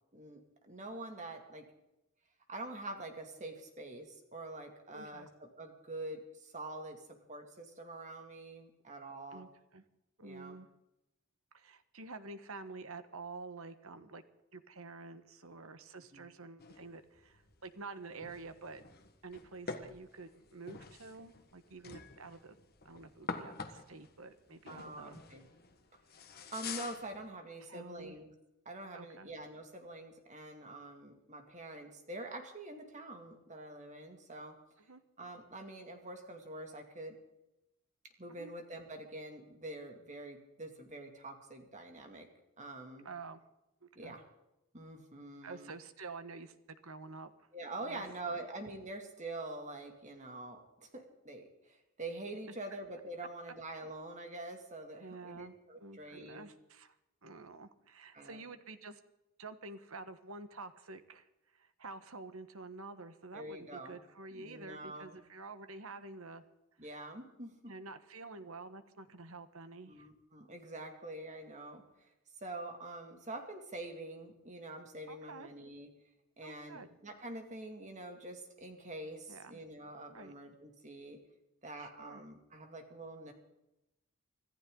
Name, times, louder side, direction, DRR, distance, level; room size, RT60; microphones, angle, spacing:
voice 1, 0.1-1.7 2.5-9.5 10.2-10.6 16.1-16.3 24.7-25.4 26.2-28.3 28.6-34.6 35.2-37.1 38.2-42.3 42.6-43.1 43.9-44.3 44.7-45.7 47.5-56.5 58.1-58.4 63.3-64.0 64.3-65.2 66.8-67.7 69.9-72.1 72.4-75.9 76.4-81.2 81.6-83.3, right 2 dB, 35° right, 4 dB, 2.5 m, -46 dB
voice 2, 4.9-5.3 9.3-9.8 10.2-10.7 11.5-14.2 14.5-18.8 19.2-22.6 22.8-25.2 27.6-28.1 28.9-29.3 34.9-35.0 38.3-38.5 43.0-43.4 43.8-44.1 45.4-47.5 47.8-48.4 53.5-53.6 55.0-55.5 55.8-56.9 57.2-59.0 59.4-66.4 66.9-67.1 67.6-70.1 75.1-75.5 76.4-77.0 79.3-79.6 80.1-80.3 81.8-82.2, right 3 dB, 70° right, 10 dB, 1.3 m, -49 dB
sound 1, 16.6-27.3, left 4 dB, 45° left, 1.5 m, -47 dB
25.5 x 14.5 x 3.9 m, 0.91 s
head